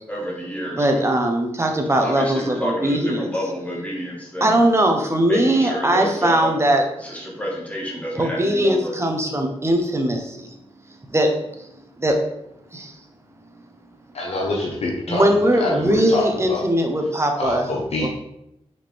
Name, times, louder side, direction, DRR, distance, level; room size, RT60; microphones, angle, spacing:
voice 1, 0.1-1.0 2.0-4.6 5.3-6.5 7.0-9.0, equal, 10° left, -3 dB, 1.7 m, -29 dB
voice 2, 0.8-3.3 4.4-7.2 8.2-10.5 11.1-11.3 11.6-11.7 12.0-12.2 12.7-13.0 15.1-17.6 18.0-18.1, right 1 dB, 25° right, 3 dB, 0.9 m, -20 dB
voice 3, 14.1-16.6 17.3-18.1, left 2 dB, 70° left, -3 dB, 1.0 m, -25 dB
6.1 x 4.4 x 3.5 m, 0.81 s
wide cardioid pair, 125°, 11 cm